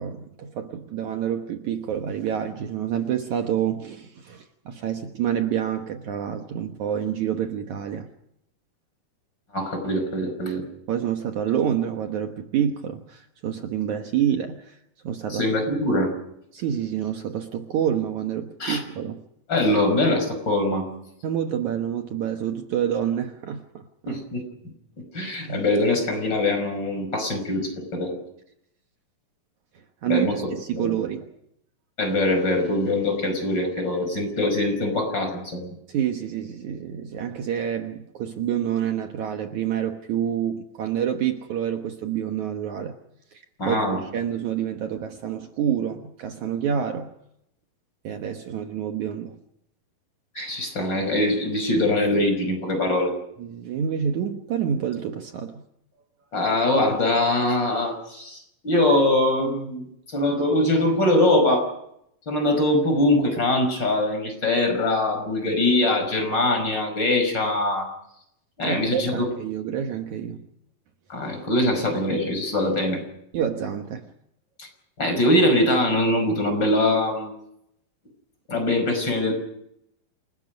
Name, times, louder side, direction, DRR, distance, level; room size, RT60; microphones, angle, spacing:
voice 1, 0.0-8.1 10.9-14.8 15.0-15.5 16.5-19.2 21.2-24.2 25.5-25.6 29.8-31.3 35.9-42.9 43.3-47.1 48.0-49.4 53.4-55.6 68.6-70.4 73.3-74.1, right 9 dB, 65° right, 5 dB, 2.4 m, -28 dB
voice 2, 9.5-10.6 15.3-16.1 18.6-18.8 19.5-20.9 24.1-24.4 25.1-28.2 30.1-30.4 30.7-31.0 32.0-35.7 43.6-44.0 50.3-53.1 56.3-61.7 62.3-67.9 68.6-69.3 71.1-73.0 74.6-74.7 75.0-77.3 78.5-79.3, left 1 dB, 30° left, 5 dB, 5.9 m, -22 dB
28.0 x 20.0 x 5.3 m, 0.76 s
omnidirectional pair, 4.1 m